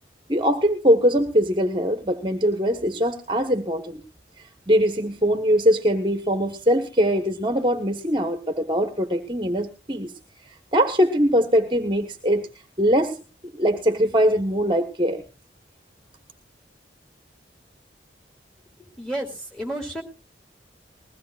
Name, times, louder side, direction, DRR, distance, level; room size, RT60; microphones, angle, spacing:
voice 1, 0.3-4.0 4.7-10.1 10.7-12.5 12.8-13.2 13.6-15.2, equal, 25° right, 7 dB, 1.2 m, -21 dB
voice 2, 18.8-20.0, right 1 dB, 5° left, 2 dB, 2.8 m, -31 dB
20.5 x 16.5 x 2.4 m, 0.33 s
head